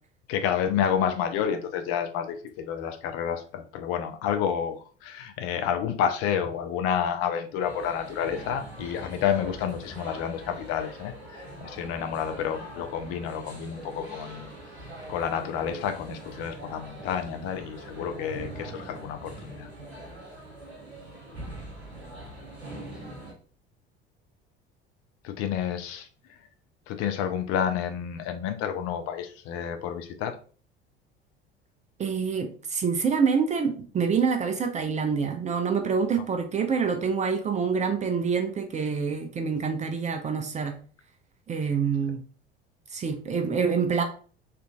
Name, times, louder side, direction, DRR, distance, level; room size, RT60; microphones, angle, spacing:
voice 1, 0.3-14.5 15.1-19.7 25.2-26.4 26.9-30.4, left 8 dB, 45° left, 6 dB, 0.5 m, -30 dB
sound 1, 7.6-23.3, right 1 dB, 90° right, 0.8 m, -42 dB
voice 2, 32.0-40.7 41.5-42.2 42.9-44.0, right 5 dB, 25° right, 7 dB, 0.5 m, -26 dB
4.4 x 2.5 x 2.3 m, 0.41 s
figure-of-eight pair, 65°, 31 cm